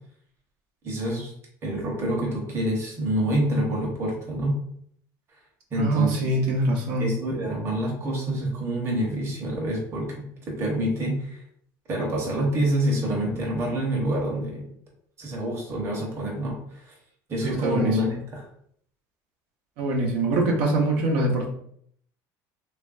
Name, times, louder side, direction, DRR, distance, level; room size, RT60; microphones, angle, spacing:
voice 1, 0.8-1.3 1.6-4.6 5.7-6.3 7.0-10.1 10.5-11.4 11.9-14.6 15.2-16.9 17.3-18.4, right 1 dB, 30° right, -2 dB, 0.9 m, -27 dB
voice 2, 5.8-7.1 17.4-18.2 19.8-21.5, right 2 dB, 80° right, -1 dB, 0.8 m, -24 dB
3.2 x 2.5 x 2.4 m, 0.65 s
cardioid pair, 160°, 9 cm